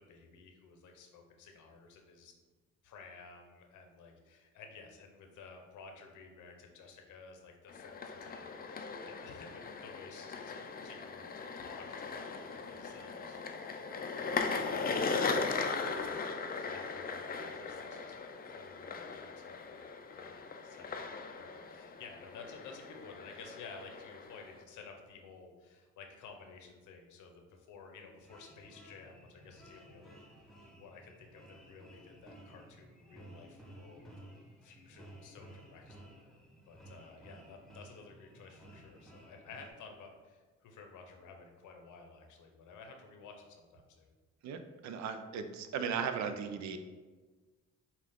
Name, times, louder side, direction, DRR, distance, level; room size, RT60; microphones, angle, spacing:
voice 1, 0.0-2.3 2.8-13.4 13.7-18.1 18.4-19.8 20.1-30.2 30.8-34.1 34.6-36.2 36.7-44.1, left 4 dB, 80° left, 3 dB, 0.8 m, -54 dB
sound 1, 7.7-24.6, left 4 dB, 30° left, 0.4 m, -39 dB
sound 2, 28.2-39.7, right 1 dB, ahead, 0.9 m, -55 dB
voice 2, 44.4-46.8, right 6 dB, 65° right, 8 dB, 0.5 m, -37 dB
5.6 x 2.4 x 3.5 m, 1.3 s
cardioid pair, 90°, 30 cm